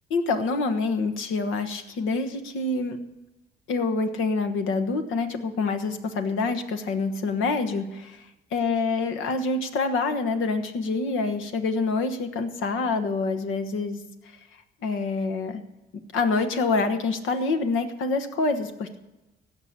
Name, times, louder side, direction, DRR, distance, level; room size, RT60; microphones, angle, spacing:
voice 1, 0.1-3.0 3.7-8.2 8.5-14.0 14.8-15.6 16.1-19.0, left 3 dB, 85° left, 8 dB, 1.3 m, -26 dB
16.0 x 6.0 x 8.3 m, 1.0 s
cardioid pair, 90°, 20 cm